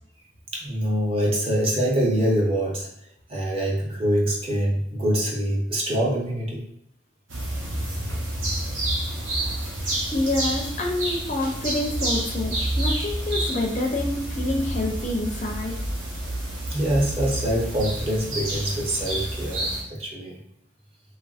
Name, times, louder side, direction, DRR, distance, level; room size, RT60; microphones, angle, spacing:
voice 1, 0.5-2.9 3.3-6.7 16.7-20.4, equal, 30° right, -2 dB, 0.6 m, -24 dB
sound 1, 7.3-19.8, right 1 dB, 90° right, 0.9 m, -29 dB
voice 2, 10.1-15.7, left 2 dB, 40° left, 1 dB, 0.4 m, -27 dB
2.9 x 2.4 x 2.3 m, 0.75 s
head